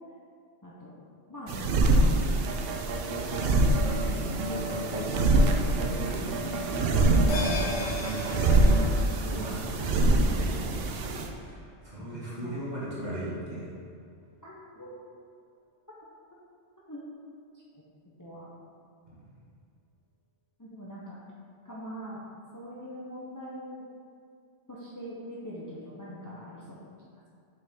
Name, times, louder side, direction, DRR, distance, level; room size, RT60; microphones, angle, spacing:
voice 1, 0.6-1.0 1.3-1.8 2.7-3.0 4.5-5.1 12.0-12.6 14.4-14.9 16.9-17.0 17.7-17.8 18.2-18.5 20.6-21.2 21.6-22.2 22.5-23.8 24.7-26.9, equal, 20° left, -6 dB, 0.7 m, -43 dB
sound 1, 1.5-11.3, right 2 dB, 60° right, 0.7 m, -25 dB
voice 2, 2.1-2.6 4.0-4.4 4.9-13.7, right 1 dB, 35° right, -8 dB, 1.6 m, -38 dB
sound 2, 2.5-4.1 4.4-8.9, right 1 dB, 90° right, 1.0 m, -35 dB
sound 3, 7.3-12.0 12.3-12.4, left 1 dB, 70° left, 1.2 m, -39 dB
6.1 x 5.3 x 3.6 m, 2.3 s
omnidirectional pair, 1.2 m